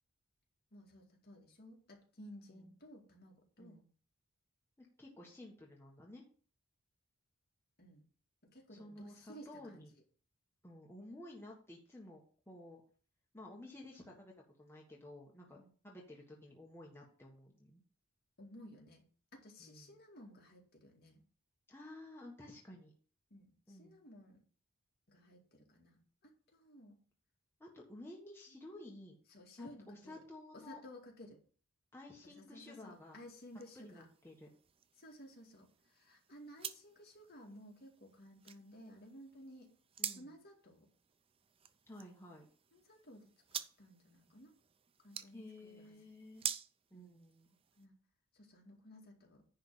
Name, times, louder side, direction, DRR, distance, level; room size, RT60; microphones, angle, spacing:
voice 1, 0.7-3.8 7.8-8.1 8.4-9.9 15.5-15.7 18.4-21.2 23.3-24.4 25.1-27.0 28.5-28.7 29.3-30.1 30.5-31.4 32.2-34.1 35.0-39.8 40.1-40.9 42.7-43.3 43.8-44.6 45.0-46.0 46.9-47.2 47.8-48.0 48.3-49.5, equal, 45° left, 0 dB, 2.3 m, -56 dB
voice 2, 4.8-6.2 8.7-9.9 10.6-12.8 13.3-14.3 14.6-17.8 19.6-20.0 21.7-22.9 23.7-24.0 27.6-29.2 29.6-30.8 31.9-33.2 33.7-34.5 40.0-40.4 41.9-42.4 45.3-46.5 46.9-47.5, left 1 dB, 10° left, -2 dB, 1.4 m, -53 dB
sound 1, 32.7-47.9, right 8 dB, 25° right, 0.5 m, -49 dB
10.5 x 3.6 x 7.1 m, 0.41 s
head